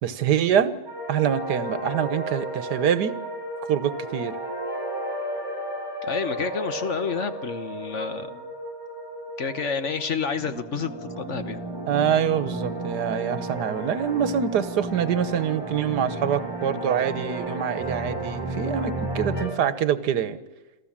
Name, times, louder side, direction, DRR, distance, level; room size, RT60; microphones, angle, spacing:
voice 1, 0.0-0.7 1.1-3.1 3.7-4.4 11.9-20.4, right 8 dB, 80° right, 14 dB, 1.6 m, -25 dB
sound 1, 0.9-19.5, right 1 dB, 15° left, 5.8 m, -33 dB
voice 2, 6.0-8.5 9.4-11.6, left 5 dB, 50° left, 10 dB, 1.3 m, -29 dB
27.0 x 14.5 x 7.4 m, 1.1 s
omnidirectional pair, 1.7 m